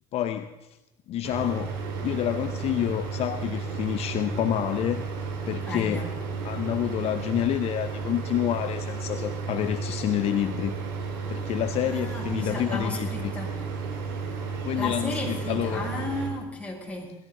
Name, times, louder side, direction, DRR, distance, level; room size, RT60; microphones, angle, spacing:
voice 1, 0.1-0.5 1.1-1.8 2.0-5.0 5.5-6.1 6.4-10.7 11.3-13.3 14.6-15.9, left 11 dB, 55° left, 10 dB, 0.8 m, -28 dB
sound 1, 1.2-16.3, right 5 dB, 80° right, 4.4 m, -33 dB
voice 2, 5.6-6.1 11.8-13.6 14.7-17.2, left 2 dB, 10° left, -3 dB, 6.8 m, -34 dB
20.0 x 14.0 x 3.9 m, 1.0 s
supercardioid pair, 80°, 13 cm